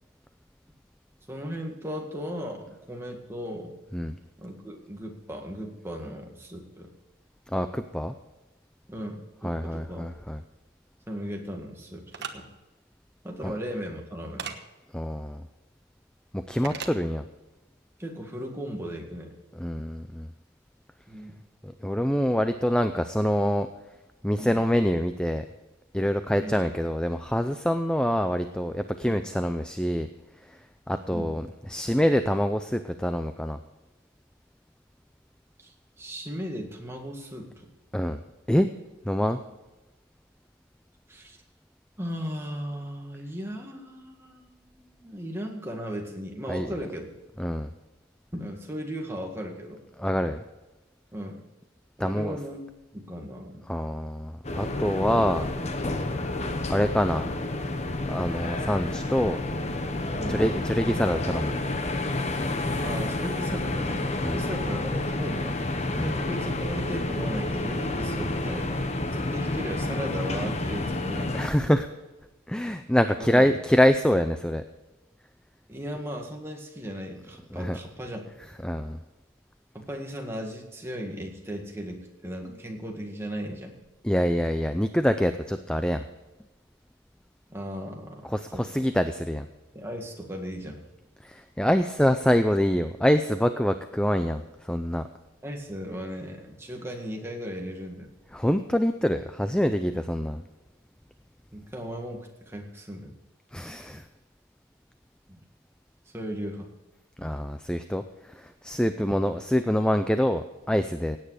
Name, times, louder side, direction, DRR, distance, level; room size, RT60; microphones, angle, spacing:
voice 1, 1.3-3.7 4.4-6.9 8.9-10.1 11.1-12.5 13.2-14.5 18.0-19.3 21.1-21.3 24.3-24.6 26.4-26.5 31.1-31.4 35.6-37.7 41.1-41.4 42.0-47.1 48.3-49.8 51.1-51.4 52.0-52.6 52.9-53.6 60.2-60.4 62.8-65.6 66.1-71.4 72.6-72.7 73.2-73.5 75.7-78.2 79.7-83.8 87.5-88.8 89.7-90.8 95.4-98.1 99.8-99.9 101.5-103.1 105.3-105.4 106.1-106.7, equal, 10° right, 1 dB, 1.9 m, -36 dB
voice 2, 7.5-8.1 9.4-10.4 13.4-13.5 14.9-15.4 16.3-17.2 19.6-20.3 21.6-23.7 24.2-25.4 25.9-30.1 30.5-30.6 30.9-33.6 37.9-38.2 38.5-38.7 39.1-39.4 46.5-46.7 47.4-47.7 50.0-50.4 52.0-52.4 53.7-55.5 56.7-57.3 58.1-59.4 60.3-61.5 64.2-64.4 66.0-66.2 71.3-71.9 72.5-74.6 77.5-77.8 78.6-79.0 84.0-86.0 88.2-89.5 91.2-95.0 98.3-100.4 103.5-104.0 107.2-108.0 108.3-111.2, equal, 5° left, 9 dB, 0.4 m, -25 dB
sound 1, 12.1-12.3 14.4-14.6 16.6-17.0, right 6 dB, 55° right, 1.2 m, -35 dB
sound 2, 54.4-71.5, left 2 dB, 30° left, 1.0 m, -29 dB
17.0 x 9.0 x 4.9 m, 1.1 s
head